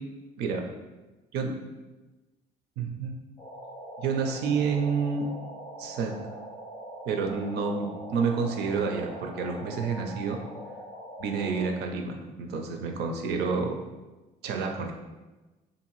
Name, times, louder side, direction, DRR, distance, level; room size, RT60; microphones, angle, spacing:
voice 1, 2.8-3.2 4.0-5.3 5.8-6.1 7.1-10.4 11.2-13.8 14.4-14.9, right 5 dB, 75° right, 3 dB, 0.5 m, -29 dB
sound 1, 3.4-11.7, right 1 dB, 25° left, 0.4 m, -42 dB
2.6 x 2.5 x 3.0 m, 1.1 s
cardioid pair, 110°, 17 cm